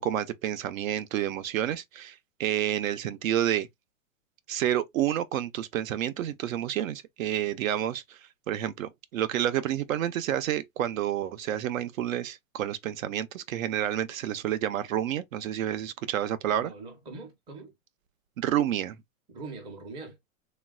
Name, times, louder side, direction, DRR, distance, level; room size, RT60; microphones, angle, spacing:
voice 1, 0.0-3.7 4.5-8.2 8.5-16.7 18.4-19.0, right 11 dB, 70° right, 0.6 m, -29 dB
voice 2, 16.5-17.7 19.3-20.2, right 3 dB, 10° right, 0.5 m, -42 dB
3.1 x 2.2 x 2.3 m
hypercardioid pair, 140°, 42 cm